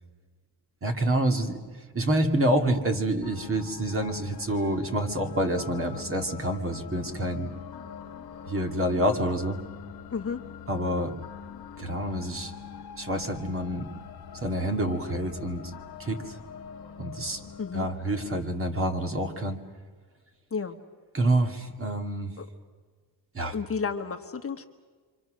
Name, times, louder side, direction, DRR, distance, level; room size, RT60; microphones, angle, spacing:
voice 1, 0.8-1.6 1.9-7.5 8.5-9.6 10.7-11.1 11.8-12.5 13.0-13.9 14.3-15.6 16.0-16.4 17.0-17.4 17.7-19.6 21.1-22.3 23.3-23.5, right 1 dB, 30° right, 4 dB, 2.3 m, -27 dB
sound 1, 3.2-19.4, left 7 dB, 60° left, 1.4 m, -44 dB
voice 2, 10.1-10.4 17.6-17.9 20.5-20.8 22.4-22.5 23.5-24.7, left 5 dB, 35° left, 5 dB, 1.3 m, -32 dB
29.0 x 25.0 x 6.4 m, 1.5 s
wide cardioid pair, 155°, 40 cm